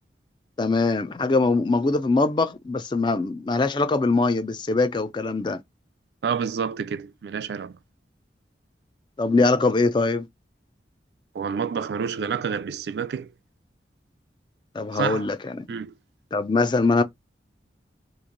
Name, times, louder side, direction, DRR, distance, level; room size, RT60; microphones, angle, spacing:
voice 1, 0.6-5.6 9.2-10.3 14.7-15.7 16.3-17.0, left 3 dB, 25° left, 0.3 m, -22 dB
voice 2, 6.2-7.7 11.3-13.3 14.9-15.3 15.7-15.9, right 6 dB, 70° right, 0.3 m, -28 dB
3.0 x 2.6 x 3.7 m
head